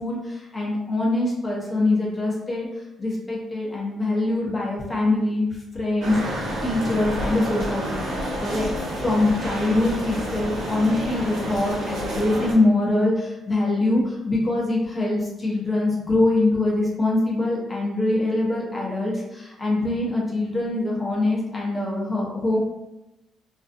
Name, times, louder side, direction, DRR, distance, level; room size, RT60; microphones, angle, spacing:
voice 1, 0.0-2.7 3.0-5.5 5.7-22.6, left 2 dB, 25° left, -4 dB, 0.8 m, -23 dB
sound 1, 6.0-12.5, right 1 dB, 75° right, 0.8 m, -29 dB
2.5 x 2.2 x 2.5 m, 0.96 s
cardioid pair, 90°, 0 cm